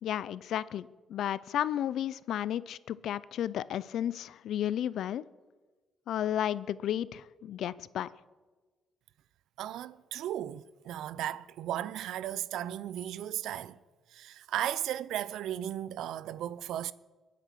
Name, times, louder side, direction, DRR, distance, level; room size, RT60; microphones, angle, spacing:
voice 1, 0.0-5.2 6.1-8.1, left 11 dB, 75° left, 0.5 m, -33 dB
voice 2, 9.6-13.8 14.1-16.9, right 11 dB, 80° right, 0.5 m, -35 dB
22.5 x 8.3 x 6.1 m
cardioid pair, 90°, 0 cm